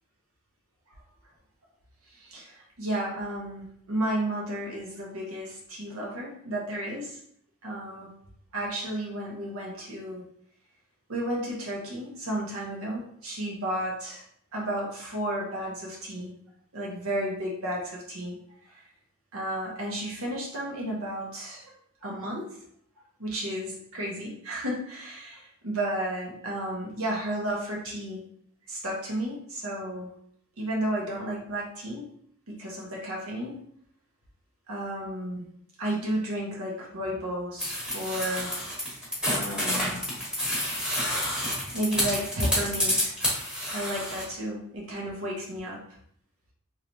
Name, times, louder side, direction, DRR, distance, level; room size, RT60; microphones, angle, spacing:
voice 1, 2.1-7.2 7.6-8.1 8.5-10.2 11.1-14.2 14.5-16.3 16.7-18.4 18.6-18.8 19.3-21.7 22.0-22.6 23.2-28.3 28.7-30.1 30.6-32.1 32.5-33.6 34.7-35.5 35.8-38.8 39.3-39.9 41.7-43.1 43.7-45.8, right 1 dB, 85° right, -2 dB, 1.1 m, -33 dB
sound 1, 37.6-44.2, equal, 5° right, 1.0 m, -29 dB
3.0 x 2.9 x 2.6 m, 0.66 s
head